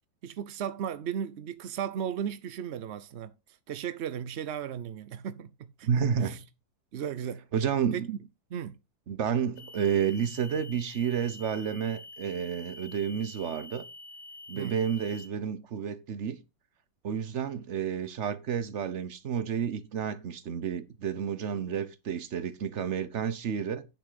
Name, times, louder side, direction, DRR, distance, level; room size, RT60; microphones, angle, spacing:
voice 1, 0.2-3.3 3.7-5.9 6.2-6.4 6.9-7.4 7.9-8.2 8.5-8.8 14.5-14.8, right 9 dB, 80° right, 0.6 m, -35 dB
voice 2, 5.8-6.4 7.5-8.1 9.1-13.9 14.5-16.4 17.0-23.9, right 7 dB, 50° right, 1.0 m, -30 dB
sound 1, 9.6-15.3, left 2 dB, 70° left, 2.2 m, -47 dB
10.5 x 6.0 x 4.1 m
omnidirectional pair, 2.0 m